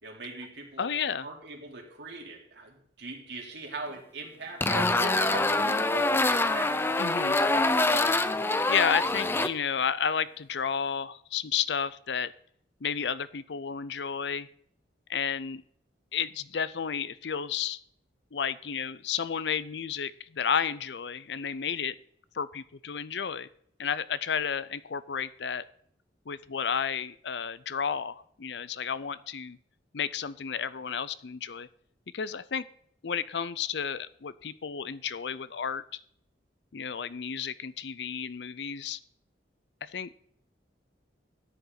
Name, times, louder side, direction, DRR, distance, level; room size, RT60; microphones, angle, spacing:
voice 1, 0.0-0.9 1.2-7.9, right 3 dB, 75° right, -1 dB, 3.3 m, -41 dB
voice 2, 0.8-1.3 7.0-7.4 8.7-12.3 12.8-14.5 15.1-15.6 16.1-17.8 18.3-21.9 22.3-23.5 23.8-25.6 26.3-29.6 29.9-31.7 32.1-32.7 33.0-36.0 36.7-39.0 39.8-40.1, left 7 dB, 70° left, 17 dB, 0.6 m, -32 dB
sound 1, 4.6-9.5, left 2 dB, 15° left, 0.5 m, -25 dB
13.5 x 9.8 x 4.0 m, 0.66 s
head